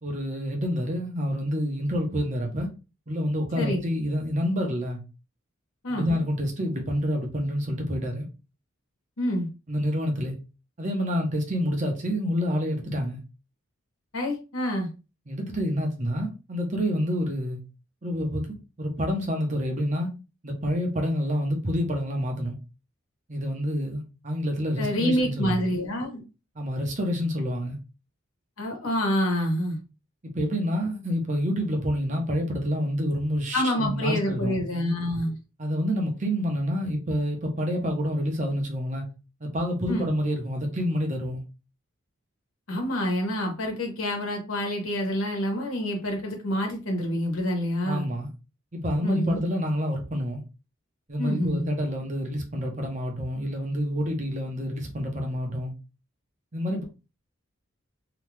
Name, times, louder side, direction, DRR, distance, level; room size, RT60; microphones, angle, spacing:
voice 1, 0.0-2.7 3.1-5.0 5.9-8.3 9.7-10.4 10.8-13.2 15.3-17.6 18.0-18.5 18.8-20.1 20.4-22.6 23.3-25.6 26.6-27.8 30.2-34.6 35.6-39.1 39.4-41.4 47.8-48.3 48.7-50.4 51.1-55.7 56.5-56.8, equal, 35° right, 0.8 m, -28 dB
voice 2, 5.8-6.2 9.2-9.5 14.1-14.9 24.8-26.2 28.6-29.8 33.5-35.4 39.9-40.1 42.7-48.1 49.0-49.4 51.2-51.6, equal, 85° left, 1.2 m, -27 dB
2.9 x 2.3 x 3.3 m
head